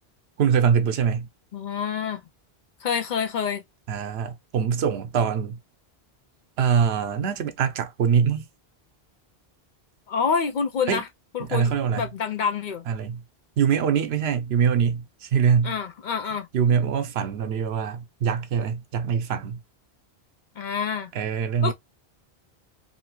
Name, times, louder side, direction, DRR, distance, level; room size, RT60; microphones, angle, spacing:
voice 1, 0.4-1.3 3.9-5.6 6.6-8.5 10.9-11.0 11.4-12.1 12.9-13.2 13.6-15.7 16.5-19.6 21.1-21.7, right 7 dB, 80° right, 0.9 m, -23 dB
voice 2, 1.5-2.2 2.8-3.6 10.1-11.1 11.3-12.8 15.6-16.5 20.6-21.1 21.6-21.7, left 6 dB, 55° left, 0.6 m, -27 dB
2.7 x 2.7 x 2.9 m
omnidirectional pair, 1.1 m